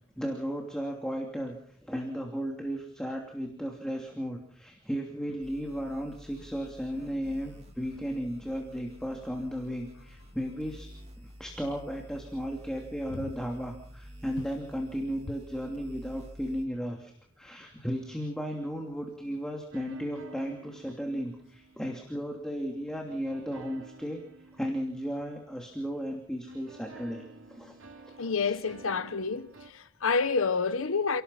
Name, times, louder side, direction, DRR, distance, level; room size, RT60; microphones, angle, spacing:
voice 1, 0.1-1.6 1.8-10.9 11.2-17.1 17.4-24.2 24.5-27.2 27.5-27.7 28.2-28.6, equal, 5° left, 2.9 m, -35 dB
sound 1, 5.4-16.6, equal, 30° right, 3.2 m, -50 dB
sound 2, 19.7-22.4 23.1-26.1 26.5-29.7, right 3 dB, 75° right, 3.0 m, -51 dB
voice 2, 28.2-31.2, left 4 dB, 85° left, 0.9 m, -29 dB
29.5 x 18.5 x 5.8 m
head